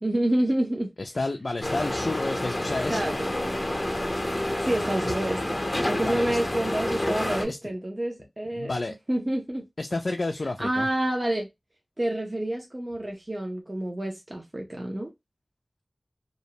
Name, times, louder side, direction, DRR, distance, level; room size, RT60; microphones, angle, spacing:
voice 1, 0.0-0.9 2.9-3.3 4.6-8.7 9.1-9.6 10.6-11.5 12.0-15.1, right 1 dB, 40° right, 0.7 m, -28 dB
voice 2, 1.0-3.0 4.3-4.4 6.1-6.4 7.5-7.6 8.6-9.0 9.8-10.9, left 2 dB, 65° left, 0.3 m, -30 dB
sound 1, 1.6-7.4, left 1 dB, 30° left, 0.7 m, -28 dB
2.5 x 2.0 x 2.7 m
wide cardioid pair, 50°, 0 cm